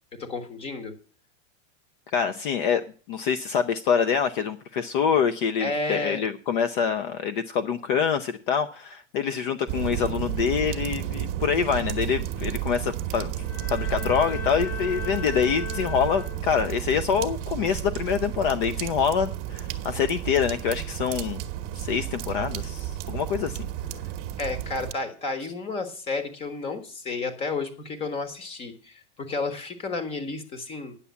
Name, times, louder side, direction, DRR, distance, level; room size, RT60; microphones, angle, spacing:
voice 1, 0.1-0.9 5.6-6.2 24.4-31.0, left 3 dB, 15° left, 8 dB, 1.3 m, -31 dB
voice 2, 2.1-13.3 13.7-21.4 21.8-23.7, left 7 dB, 45° left, 10 dB, 0.7 m, -26 dB
sound 1, 9.7-24.9, right 11 dB, 35° right, 1.1 m, -32 dB
Bowed string instrument, 13.4-16.8, left 6 dB, 70° left, 4.6 m, -37 dB
9.9 x 7.1 x 8.1 m, 0.40 s
supercardioid pair, 175°, 35 cm